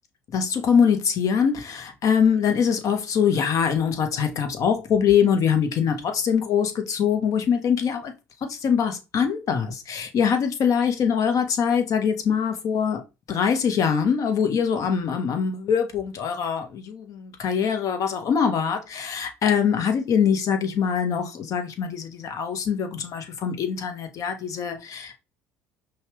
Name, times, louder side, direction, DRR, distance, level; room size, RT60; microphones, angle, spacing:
voice 1, 0.3-8.1 8.5-13.0 13.3-25.2, left 7 dB, 50° left, 1.0 m, -23 dB
5.6 x 2.3 x 3.1 m
hypercardioid pair, 65°, 7 cm